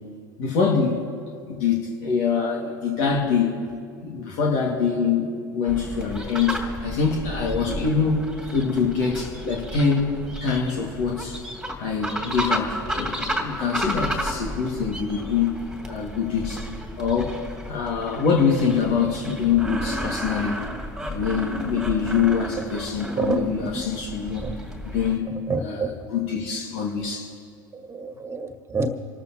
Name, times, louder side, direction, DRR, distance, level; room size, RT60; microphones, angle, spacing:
voice 1, 0.4-1.1 1.5-3.6 4.0-8.2 8.5-10.1 10.4-11.4 11.8-15.6 15.9-16.7 17.0-17.4 17.7-20.6 21.0-24.5 24.9-27.3, left 6 dB, 65° left, -1 dB, 2.1 m, -24 dB
sound 1, 5.7-25.2, equal, 5° right, 2.4 m, -33 dB
voice 2, 23.1-23.7 24.4-24.5 25.5-25.9 27.7-29.0, right 3 dB, 25° right, 7 dB, 1.6 m, -27 dB
27.5 x 13.5 x 3.0 m, 2.3 s
hypercardioid pair, 75°, 11 cm